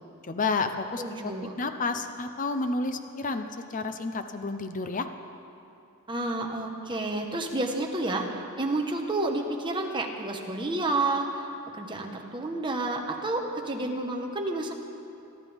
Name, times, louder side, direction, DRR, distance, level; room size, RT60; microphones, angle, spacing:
voice 1, 0.2-1.0 1.6-5.1, left 3 dB, 35° left, 8 dB, 0.6 m, -30 dB
voice 2, 1.0-1.5 6.1-11.5 11.7-14.7, right 2 dB, 20° right, 2 dB, 1.2 m, -30 dB
23.0 x 12.0 x 3.6 m, 2.7 s
head